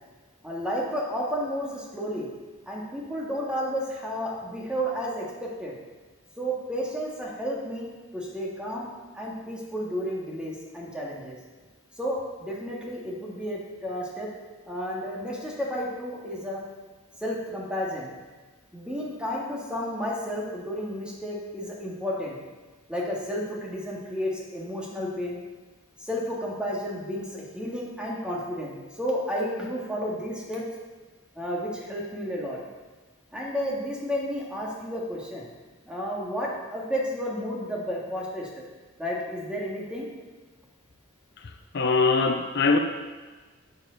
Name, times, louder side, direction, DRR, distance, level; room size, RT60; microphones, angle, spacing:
voice 1, 0.4-2.3 2.7-5.8 6.4-8.9 9.1-11.4 12.0-14.3 14.6-16.6 17.2-18.1 18.7-22.4 22.9-25.4 26.0-30.6 31.4-32.6 33.3-35.5 35.9-38.5 39.0-40.1, equal, 5° right, -4 dB, 2.0 m, -32 dB
voice 2, 41.4-42.8, left 4 dB, 55° left, 5 dB, 0.6 m, -23 dB
11.5 x 7.3 x 4.0 m, 1.3 s
head